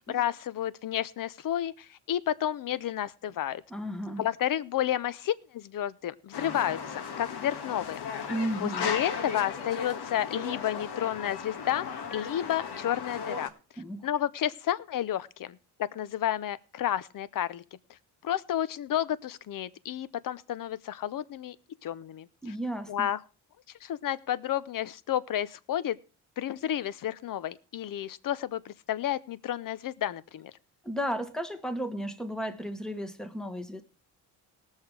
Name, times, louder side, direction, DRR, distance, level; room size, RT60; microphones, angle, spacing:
voice 1, 0.1-3.6 4.2-8.3 8.6-13.5 14.0-17.6 17.9-18.0 18.2-21.6 21.8-22.3 22.9-23.2 23.8-26.0 26.4-30.5, left 11 dB, 55° left, 18 dB, 0.7 m, -31 dB
voice 2, 3.7-4.3 8.3-9.0 13.8-14.1 22.4-23.1 30.8-33.8, equal, ahead, 7 dB, 1.3 m, -34 dB
sound 1, 6.3-13.5, left 6 dB, 80° left, 1.8 m, -36 dB
19.0 x 6.5 x 4.7 m, 0.36 s
cardioid pair, 115°, 39 cm